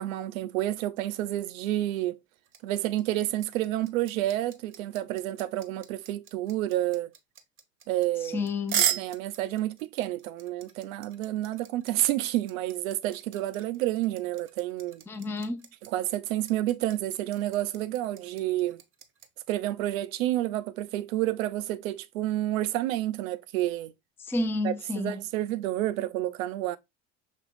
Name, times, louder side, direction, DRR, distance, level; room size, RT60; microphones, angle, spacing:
voice 1, 0.0-2.2 2.6-7.1 7.9-8.4 8.9-15.0 15.9-18.8 19.5-23.9 24.6-26.8, right 14 dB, 85° right, 0.5 m, -29 dB
sound 1, 2.5-19.3, right 9 dB, 30° right, 0.7 m, -35 dB
voice 2, 8.2-8.9 15.1-15.6 24.2-25.2, left 2 dB, 5° left, 0.4 m, -30 dB
5.2 x 2.9 x 2.5 m
hypercardioid pair, 80°, 40 cm